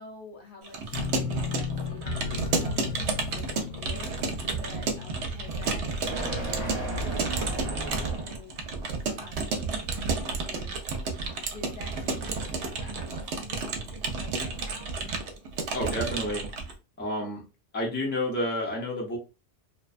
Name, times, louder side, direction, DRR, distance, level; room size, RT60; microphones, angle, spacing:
voice 1, 0.0-3.0 3.3-5.9 6.2-8.6 9.1-14.9, left 4 dB, 55° left, -2 dB, 0.8 m, -48 dB
Keyboard (musical) / Computer keyboard, 0.6-16.7, right 4 dB, 75° right, 0.9 m, -31 dB
sound 1, 0.9-7.8 8.1-8.6 9.0-9.1, left 8 dB, 75° left, 0.3 m, -37 dB
sound 2, 1.7-8.5, right 1 dB, 50° right, 1.0 m, -36 dB
voice 2, 15.7-16.5 17.0-17.4 17.7-19.2, left 1 dB, 10° left, -2 dB, 0.6 m, -30 dB
2.5 x 2.2 x 2.3 m, 0.29 s
omnidirectional pair, 1.2 m